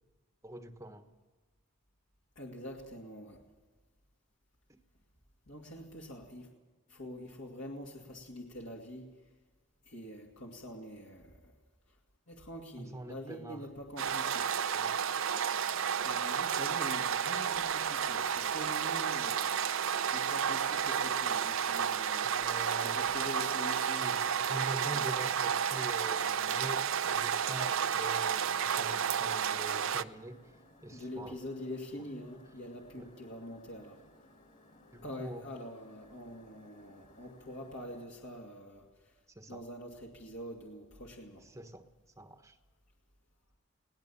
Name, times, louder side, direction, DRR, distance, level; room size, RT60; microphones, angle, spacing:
voice 1, 0.4-1.1 4.7-4.8 12.8-13.7 14.7-15.0 22.2-23.1 24.0-30.4 30.8-31.4 33.0-33.1 34.9-35.5 39.3-39.6 41.4-41.8 42.2-42.6, right 1 dB, 15° right, 7 dB, 1.3 m, -45 dB
voice 2, 2.4-3.4 5.5-6.5 6.9-9.1 9.9-11.3 12.3-14.4 16.0-19.5 20.1-22.3 22.8-24.3 24.9-25.0 30.9-34.0 35.0-38.8 39.5-41.4, equal, 55° left, -1 dB, 2.4 m, -45 dB
sound 1, 14.0-30.0, right 8 dB, 65° right, 0.6 m, -31 dB
sound 2, 24.2-38.1, left 1 dB, 35° left, 2.9 m, -61 dB
22.0 x 18.0 x 7.1 m, 1.3 s
head